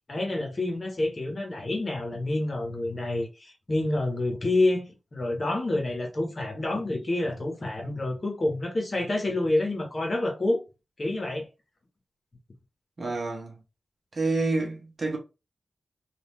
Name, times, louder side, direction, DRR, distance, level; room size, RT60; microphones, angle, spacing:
voice 1, 0.1-10.6 11.0-11.5, left 2 dB, 30° left, 1.1 m, -28 dB
voice 2, 13.0-13.6 14.1-15.2, right 3 dB, 40° right, 1.0 m, -28 dB
3.7 x 2.5 x 3.1 m
wide cardioid pair, 175°, 0 cm